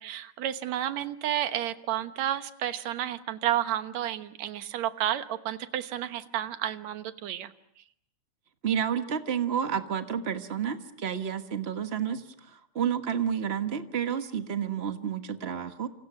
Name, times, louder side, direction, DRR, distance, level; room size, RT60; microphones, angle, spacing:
voice 1, 0.0-7.5, right 11 dB, 70° right, 10 dB, 2.4 m, -31 dB
voice 2, 8.6-15.9, right 8 dB, 55° right, 7 dB, 0.6 m, -30 dB
28.0 x 28.0 x 6.2 m, 0.71 s
omnidirectional pair, 3.4 m